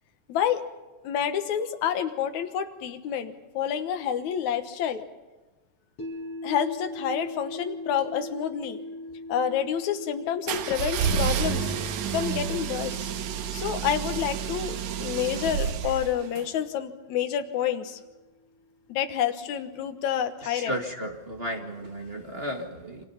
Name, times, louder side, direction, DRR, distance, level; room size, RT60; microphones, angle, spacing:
voice 1, 0.3-0.7 1.0-5.0 6.4-8.8 9.3-11.7 12.1-13.1 13.5-18.0 18.9-20.7, left 9 dB, 75° left, 7 dB, 2.6 m, -28 dB
sound 1, 6.0-18.1, left 1 dB, 55° left, 5.1 m, -42 dB
sound 2, 10.5-16.5, right 8 dB, 80° right, 2.5 m, -30 dB
voice 2, 20.4-23.0, equal, 25° right, 3 dB, 1.7 m, -34 dB
30.0 x 25.0 x 5.8 m, 1.2 s
omnidirectional pair, 3.3 m